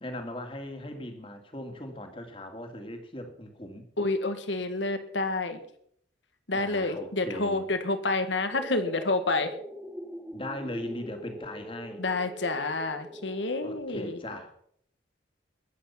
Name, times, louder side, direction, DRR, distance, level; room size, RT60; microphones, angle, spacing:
voice 1, 0.0-3.8 6.5-7.7 10.3-12.0 13.6-14.5, left 1 dB, 30° left, 6 dB, 2.2 m, -39 dB
voice 2, 4.0-5.6 6.5-9.5 12.0-14.2, left 2 dB, 80° left, 9 dB, 1.8 m, -29 dB
sound 1, 8.5-13.8, equal, 10° right, 1.6 m, -42 dB
21.0 x 8.5 x 5.8 m, 0.66 s
head